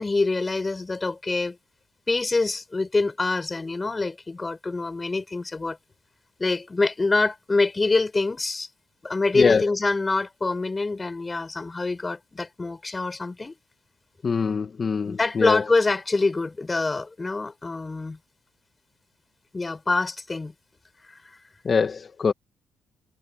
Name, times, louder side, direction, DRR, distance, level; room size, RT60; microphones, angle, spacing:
voice 1, 0.0-1.6 2.1-5.8 6.4-8.7 9.0-13.5 15.0-18.2 19.5-20.5 21.1-21.2, left 3 dB, 25° left, 5.4 m, -25 dB
voice 2, 14.2-15.6 21.7-22.3, left 5 dB, 40° left, 1.9 m, -23 dB
cardioid pair, 90°, 0 cm